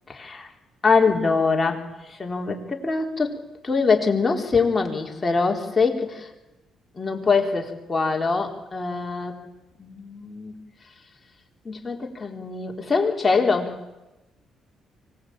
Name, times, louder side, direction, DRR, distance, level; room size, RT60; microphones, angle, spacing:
voice 1, 0.1-0.5 0.8-1.8 2.1-3.4 3.6-6.3 7.0-9.4 9.8-10.5 11.6-13.7, left 4 dB, 25° left, 1 dB, 4.1 m, -23 dB
25.0 x 18.5 x 9.0 m, 1.0 s
cardioid pair, 90°, 0 cm